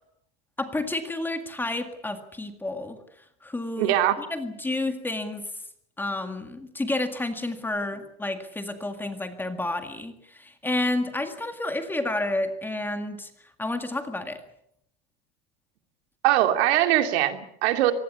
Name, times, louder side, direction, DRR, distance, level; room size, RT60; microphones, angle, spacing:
voice 1, 0.6-3.0 3.4-5.4 6.0-13.3 13.6-14.4, left 2 dB, 5° left, 6 dB, 1.9 m, -30 dB
voice 2, 3.8-4.2 16.2-17.9, right 13 dB, 70° right, 7 dB, 2.9 m, -21 dB
24.5 x 19.5 x 8.3 m, 0.72 s
supercardioid pair, 175°, 33 cm